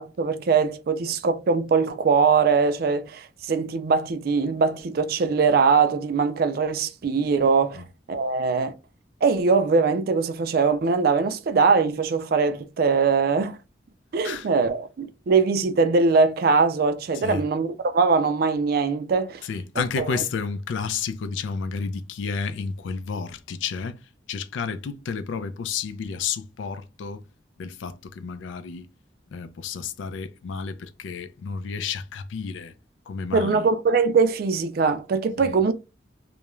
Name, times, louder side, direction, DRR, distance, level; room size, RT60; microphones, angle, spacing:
voice 1, 0.0-8.7 9.2-13.6 14.1-19.4 20.0-20.1 33.3-35.7, right 5 dB, 55° right, 0.3 m, -22 dB
voice 2, 17.1-17.5 19.4-27.2 27.6-28.9 29.3-32.7 33.1-33.7 35.4-35.6, left 5 dB, 90° left, 0.4 m, -31 dB
2.3 x 2.1 x 3.0 m
head